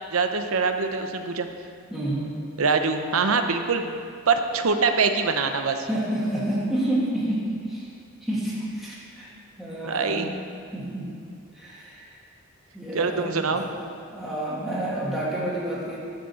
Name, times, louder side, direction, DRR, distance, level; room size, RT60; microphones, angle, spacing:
voice 1, 0.1-1.5 2.6-4.0 4.3-5.9 9.8-10.3 12.9-13.6, right 4 dB, 80° right, 7 dB, 0.8 m, -24 dB
voice 2, 1.9-2.3 5.9-7.9 8.2-9.3 9.6-10.3 10.7-11.1 11.5-12.2 12.7-13.9 14.1-16.0, right 1 dB, ahead, -8 dB, 2.0 m, -29 dB
11.5 x 5.3 x 6.9 m, 2.3 s
head